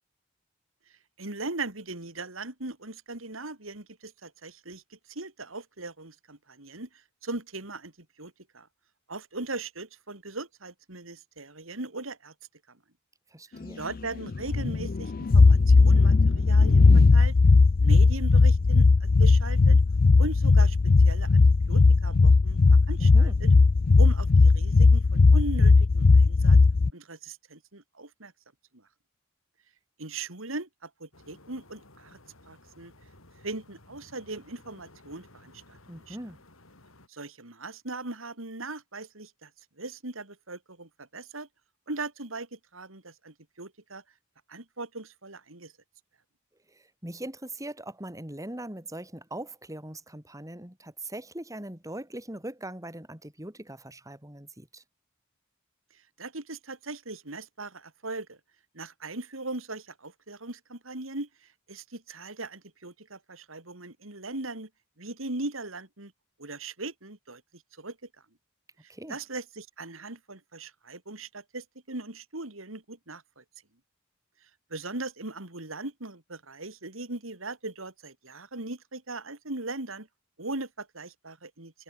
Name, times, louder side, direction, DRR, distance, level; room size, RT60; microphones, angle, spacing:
voice 1, 1.2-7.9 8.2-8.7 9.1-12.3 13.8-17.4 17.8-19.8 20.2-20.8 21.0-21.4 21.7-22.6 22.9-23.5 24.0-26.6 26.9-28.3 28.7-28.8 30.0-32.2 32.5-32.9 33.4-35.8 36.1-36.2 37.1-39.5 39.8-41.5 41.9-44.0 44.5-45.7 56.2-58.4 58.7-64.7 65.0-66.1 66.4-68.0 68.8-73.4 74.7-80.1 80.4-81.7, right 2 dB, 75° right, 3.6 m, -39 dB
voice 2, 13.3-13.9 23.0-23.4 35.9-36.4 46.7-54.8 68.9-69.2, right 1 dB, 15° right, 4.2 m, -41 dB
sound 1, 14.3-26.9, left 3 dB, 45° left, 0.5 m, -18 dB
sound 2, 31.1-37.1, left 2 dB, 85° left, 7.4 m, -55 dB
head